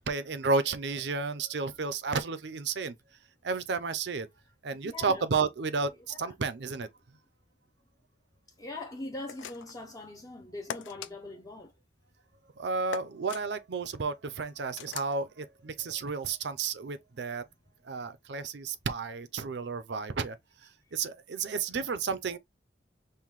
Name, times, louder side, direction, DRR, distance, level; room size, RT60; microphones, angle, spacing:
voice 1, 0.1-2.9 3.4-4.3 4.6-6.9 12.6-17.4 17.8-20.4 20.9-22.4, right 4 dB, 65° right, 0.5 m, -32 dB
voice 2, 4.7-5.2 6.1-6.3 8.6-11.7, left 2 dB, 20° left, 0.5 m, -42 dB
sound 1, 9.3-9.8 10.7-11.1 12.9-13.4 14.8-15.1, left 8 dB, 80° left, 0.4 m, -40 dB
5.5 x 2.2 x 3.1 m
head